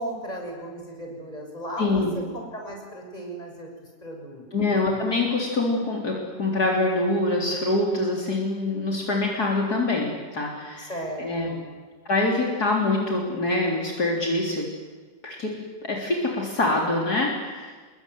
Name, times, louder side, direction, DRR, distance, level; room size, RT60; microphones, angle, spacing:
voice 1, 0.0-2.0 2.3-3.7 4.0-4.4 10.8-11.7, right 1 dB, 20° left, 1 dB, 6.8 m, -35 dB
voice 2, 1.8-2.1 4.5-10.9 11.2-11.5 12.1-14.7 15.2-15.5 15.8-17.8, left 2 dB, 60° left, -1 dB, 4.3 m, -25 dB
27.0 x 22.0 x 9.6 m, 1.4 s
omnidirectional pair, 1.9 m